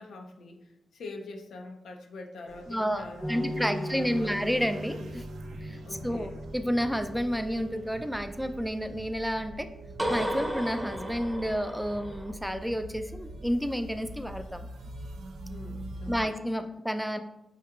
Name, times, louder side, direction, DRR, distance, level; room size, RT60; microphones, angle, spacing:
voice 1, 0.0-4.3 5.9-6.3 15.5-16.1, left 2 dB, 85° left, 2 dB, 0.5 m, -44 dB
sound 1, 2.5-16.2, right 1 dB, 90° right, 0.4 m, -44 dB
voice 2, 2.7-5.3 5.5-9.7 10.1-14.7 16.1-17.2, equal, ahead, 8 dB, 0.3 m, -30 dB
sound 2, 3.2-7.5 10.0-12.3, equal, 20° right, 0.8 m, -36 dB
4.7 x 2.7 x 2.3 m, 0.85 s
cardioid pair, 55°, 0 cm